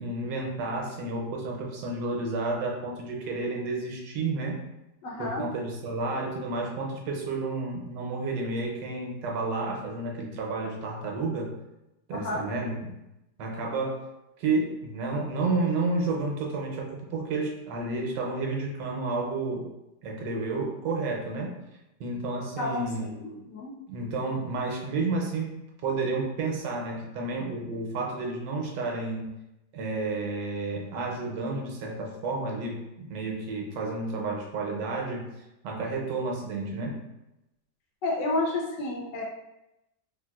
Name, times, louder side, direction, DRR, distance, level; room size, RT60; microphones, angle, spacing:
voice 1, 0.0-4.6 5.2-11.5 12.1-12.8 13.4-14.0 14.4-19.6 20.0-21.5 22.0-23.1 23.9-25.6 25.8-29.3 29.7-35.2 35.6-37.1, right 3 dB, 75° right, -1 dB, 1.3 m, -31 dB
voice 2, 5.0-5.4 12.1-12.4 22.6-23.7 38.0-39.2, left 2 dB, 75° left, -1 dB, 1.2 m, -31 dB
3.8 x 2.4 x 2.3 m, 0.93 s
omnidirectional pair, 2.0 m